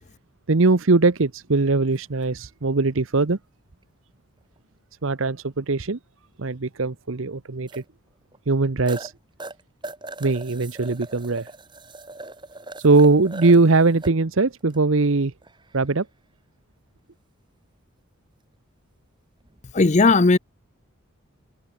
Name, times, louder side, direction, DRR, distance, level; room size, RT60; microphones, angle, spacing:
voice 1, 0.5-3.4 5.0-6.0 6.4-7.8 8.5-9.1 10.2-11.5 12.8-15.3 15.7-16.1, right 3 dB, 70° right, 0.9 m, -20 dB
sound 1, 1.9-2.1 4.6-4.7 7.7-7.8 8.3-8.4 8.9-9.1 9.4-14.1 14.6-14.8 15.4-15.9 19.4-19.6, right 2 dB, 20° right, 3.4 m, -40 dB
voice 2, 19.7-20.4, left 3 dB, 35° left, 0.6 m, -16 dB
head